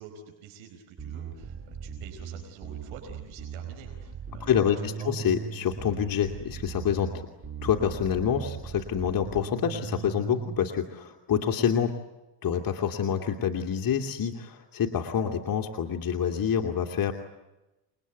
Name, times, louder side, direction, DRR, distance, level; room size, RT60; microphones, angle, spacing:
voice 1, 0.0-5.3, right 7 dB, 90° right, 3 dB, 4.7 m, -47 dB
Bass guitar, 1.0-10.6, right 7 dB, 25° right, 4.1 m, -39 dB
voice 2, 4.4-7.3 7.6-12.0 12.4-17.1, left 8 dB, 45° left, 3 dB, 2.5 m, -27 dB
28.5 x 21.0 x 9.4 m, 1.0 s
cardioid pair, 100°, 46 cm